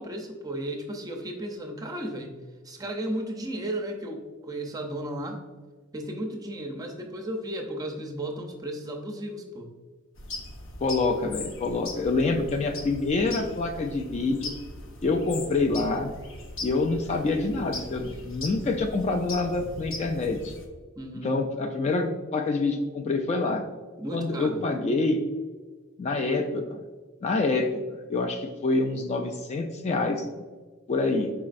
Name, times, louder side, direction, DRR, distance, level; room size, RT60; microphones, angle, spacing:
voice 1, 0.0-2.3 2.6-5.4 5.9-9.7 21.0-21.4 24.0-24.6, right 1 dB, 20° right, 2 dB, 0.5 m, -34 dB
sound 1, 10.2-20.7, left 2 dB, 65° left, 0.7 m, -40 dB
voice 2, 10.8-14.5 15.0-16.1 16.6-20.5 21.2-23.6 24.1-25.2 26.0-26.8 27.2-27.7 28.1-30.3 30.9-31.3, left 3 dB, 30° left, 4 dB, 0.3 m, -26 dB
4.6 x 4.1 x 2.5 m, 1.4 s
head